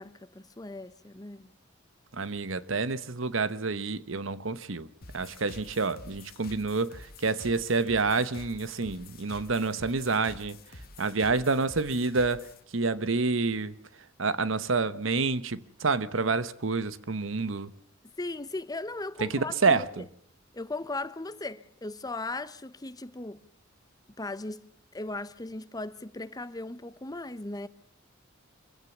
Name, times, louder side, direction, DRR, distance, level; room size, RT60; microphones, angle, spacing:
voice 1, 0.0-1.5 18.2-19.8 20.5-23.4 24.2-27.7, left 2 dB, 20° left, 0.8 m, -37 dB
voice 2, 2.1-4.9 5.1-10.6 11.0-12.5 12.7-13.7 14.2-17.7 19.2-20.0, right 4 dB, 75° right, 1.0 m, -28 dB
sound 1, 5.0-12.6, left 2 dB, 50° left, 1.6 m, -48 dB
25.0 x 16.5 x 7.2 m
head